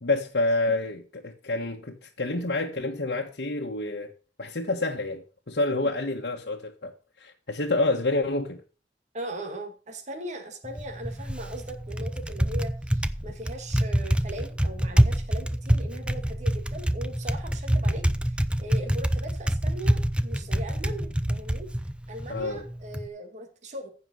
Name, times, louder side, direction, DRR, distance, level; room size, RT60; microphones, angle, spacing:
voice 1, 0.0-4.1 4.4-6.9 7.2-8.6 22.3-22.6, left 2 dB, 65° left, 1.4 m, -28 dB
voice 2, 9.1-21.7 22.1-23.9, right 1 dB, 40° right, 2.1 m, -39 dB
Typing, 10.6-23.1, equal, 5° right, 0.6 m, -26 dB
15.0 x 5.4 x 6.3 m
head